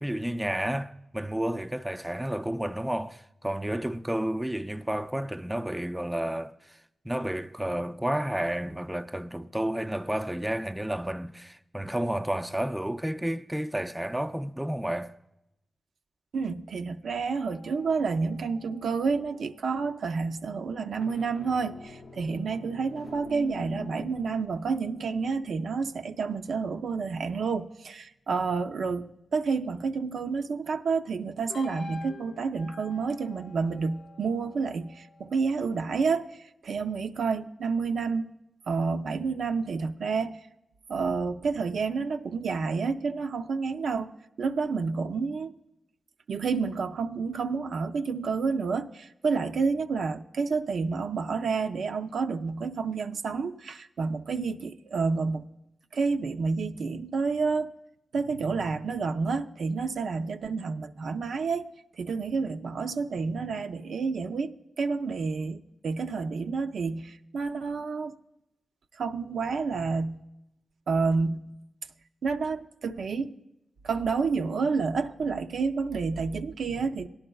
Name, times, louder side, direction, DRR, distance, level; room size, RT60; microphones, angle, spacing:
voice 1, 0.0-6.8 7.0-15.1, right 1 dB, 5° right, 0.4 m, -31 dB
voice 2, 16.3-36.3 36.6-38.3 38.7-40.4 40.9-45.5 46.3-55.5 55.9-57.7 58.1-61.7 61.9-68.2 69.0-70.2 70.9-71.5 72.2-73.3 73.8-77.1, right 4 dB, 75° right, 0.4 m, -29 dB
sound 1, 17.1-19.8 20.8-27.6 31.5-35.7, left 3 dB, 80° left, 0.5 m, -47 dB
17.5 x 11.0 x 2.3 m
cardioid pair, 65°, 0 cm